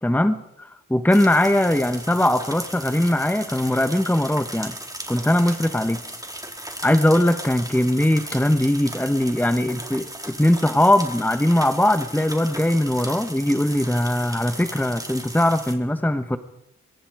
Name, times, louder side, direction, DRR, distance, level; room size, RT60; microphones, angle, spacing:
voice 1, 0.0-4.8 5.1-6.0 6.8-16.4, left 1 dB, 5° left, 9 dB, 1.3 m, -20 dB
sound 1, 1.1-15.7, right 1 dB, 10° right, 4.4 m, -36 dB
24.0 x 22.0 x 5.0 m, 0.87 s
cardioid pair, 45°, 30 cm